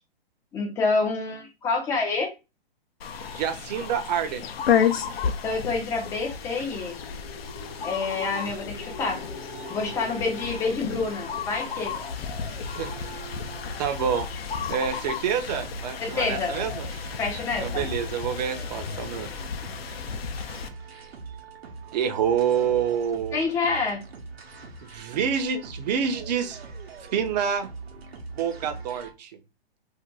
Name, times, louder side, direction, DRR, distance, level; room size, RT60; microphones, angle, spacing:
voice 1, 0.5-2.3 5.4-7.0 7.8-9.2 9.7-12.0 16.0-16.5 17.2-17.9 23.3-24.0, left 4 dB, 10° left, 0.4 m, -27 dB
sound 1, 3.0-20.7, left 7 dB, 75° left, 0.6 m, -32 dB
voice 2, 3.3-4.5 12.8-12.9 13.8-14.3 14.7-16.9 17.6-19.3 21.9-23.5 24.8-26.6 27.1-27.7 28.4-29.3, right 8 dB, 45° right, 0.5 m, -27 dB
sound 2, 5.7-14.1, left 3 dB, 55° left, 1.0 m, -44 dB
sound 3, 9.4-29.1, right 4 dB, 80° right, 0.8 m, -43 dB
2.5 x 2.1 x 3.7 m
hypercardioid pair, 130°, 30 cm